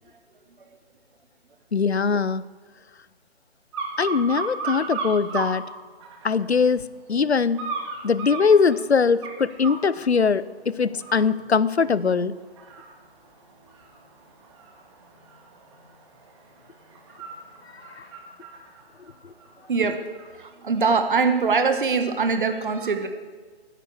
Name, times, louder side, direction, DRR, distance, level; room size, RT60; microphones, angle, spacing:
voice 1, 1.7-2.4 4.0-5.7 6.2-6.8 7.1-7.6 8.0-12.4 18.0-18.1, left 5 dB, 80° left, 18 dB, 0.6 m, -21 dB
sound 1, 3.7-5.5 6.0-6.6 7.6-9.8 10.3-10.6 10.9-20.3 20.7-20.8, right 4 dB, 25° right, 1.9 m, -36 dB
voice 2, 19.7-20.0 20.3-23.1, right 4 dB, 50° right, 8 dB, 1.4 m, -22 dB
10.0 x 9.1 x 8.3 m, 1.5 s
figure-of-eight pair, 135°, 32 cm